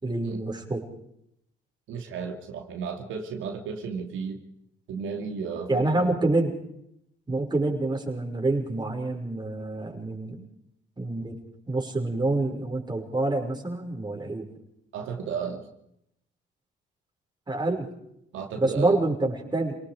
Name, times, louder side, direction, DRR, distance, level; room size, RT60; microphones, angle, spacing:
voice 1, 0.0-0.9 5.7-6.5 7.3-10.4 11.0-11.4 11.7-14.5 17.5-17.9 18.6-19.8, right 2 dB, 20° right, 1 dB, 5.5 m, -27 dB
voice 2, 1.9-4.4 4.9-6.1 14.9-15.6 18.3-19.0, right 6 dB, 85° right, 3 dB, 2.7 m, -33 dB
28.5 x 19.0 x 5.1 m, 0.76 s
cardioid pair, 90°, 20 cm